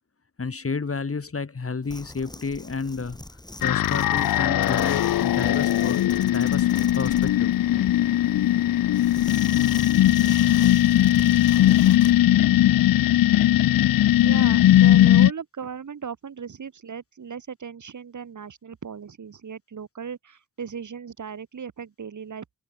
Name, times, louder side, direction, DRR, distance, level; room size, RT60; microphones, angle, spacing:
voice 1, 0.4-3.2 3.6-6.7 7.0-7.9, left 4 dB, 40° left, 6.0 m, -31 dB
sound 1, 1.8-12.2, left 1 dB, 10° left, 5.7 m, -42 dB
sound 2, 3.6-15.3, left 13 dB, 85° left, 0.7 m, -19 dB
voice 2, 14.2-22.5, right 6 dB, 60° right, 3.5 m, -37 dB
cardioid pair, 65°, 33 cm